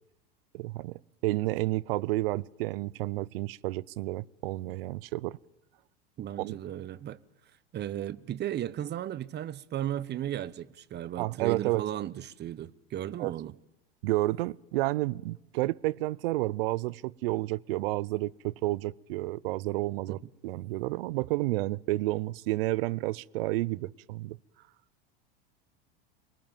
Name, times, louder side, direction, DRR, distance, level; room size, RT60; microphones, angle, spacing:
voice 1, 0.5-0.9 1.2-5.4 6.4-6.6 11.2-11.9 13.2-13.3 14.0-24.4, right 19 dB, 75° right, 0.7 m, -30 dB
voice 2, 6.2-7.2 7.7-13.5 20.1-20.2, right 11 dB, 35° right, 1.1 m, -35 dB
22.5 x 20.5 x 7.3 m
supercardioid pair, 105°, 29 cm